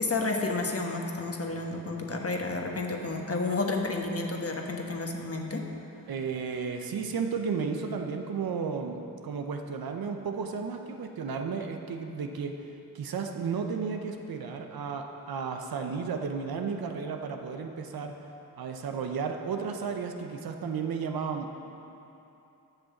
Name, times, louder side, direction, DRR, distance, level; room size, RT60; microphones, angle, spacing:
voice 1, 0.0-5.6, left 3 dB, 40° left, 2 dB, 1.3 m, -31 dB
voice 2, 6.1-12.5 12.9-18.1 18.6-21.7, right 5 dB, 80° right, 4 dB, 0.8 m, -33 dB
7.9 x 6.3 x 7.1 m, 2.9 s
cardioid pair, 45°, 36 cm